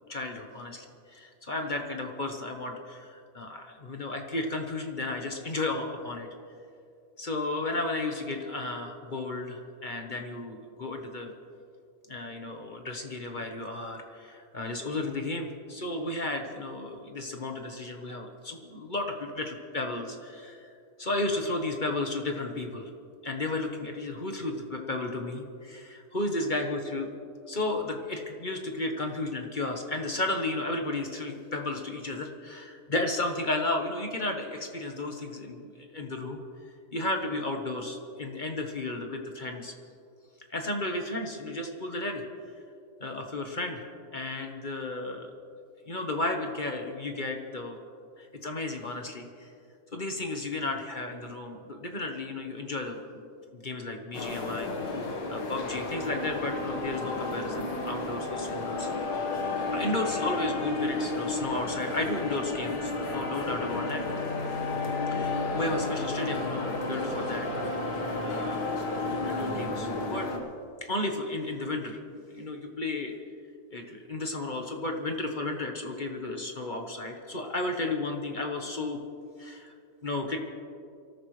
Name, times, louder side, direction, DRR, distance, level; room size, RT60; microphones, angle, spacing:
voice 1, 0.1-0.9 1.1-6.3 7.2-11.3 12.1-20.7 21.0-22.9 23.2-27.1 27.5-36.4 36.9-39.7 40.5-42.2 43.0-43.8 44.1-45.3 45.9-47.8 48.2-49.5 49.9-53.2 53.5-58.9 59.7-64.0 65.1-67.5 68.2-68.7 69.1-70.3 70.8-72.0 72.3-73.1 73.7-79.0 79.4-79.7 80.0-80.4, left 2 dB, 35° left, 3 dB, 1.1 m, -33 dB
sound 1, 54.1-70.4, left 3 dB, 80° left, 2.1 m, -32 dB
24.5 x 14.0 x 3.2 m, 2.5 s
omnidirectional pair, 1.7 m